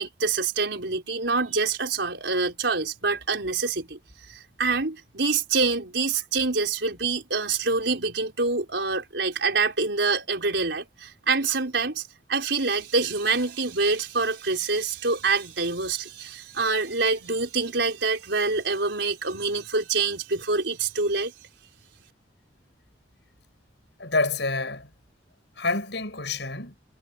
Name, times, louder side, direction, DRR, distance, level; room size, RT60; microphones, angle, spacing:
voice 1, 0.0-4.0 4.3-12.0 12.3-21.3, right 4 dB, 70° right, 4.7 m, -26 dB
voice 2, 24.0-24.9 25.6-26.8, left 3 dB, 65° left, 8.0 m, -27 dB
head